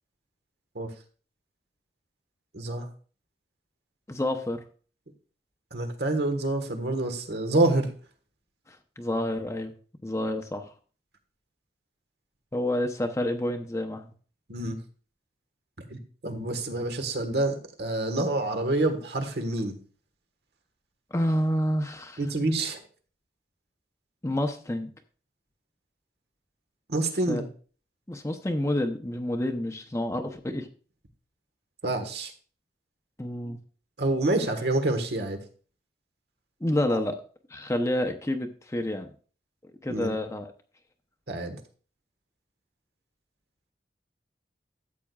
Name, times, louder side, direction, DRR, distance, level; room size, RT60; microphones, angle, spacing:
voice 1, 2.5-2.9 5.7-7.9 14.5-14.8 15.9-19.7 22.2-22.8 26.9-27.5 31.8-32.3 34.0-35.4 39.9-40.2 41.3-41.6, right 2 dB, 70° right, 7 dB, 1.4 m, -27 dB
voice 2, 4.1-4.6 8.7-9.7 10.0-10.7 12.5-14.1 21.1-22.2 24.2-24.9 27.3-27.4 28.1-30.7 33.2-33.6 36.6-37.2 37.5-39.1 39.8-40.5, left 1 dB, 15° left, 5 dB, 0.6 m, -28 dB
13.5 x 8.2 x 2.3 m, 0.40 s
head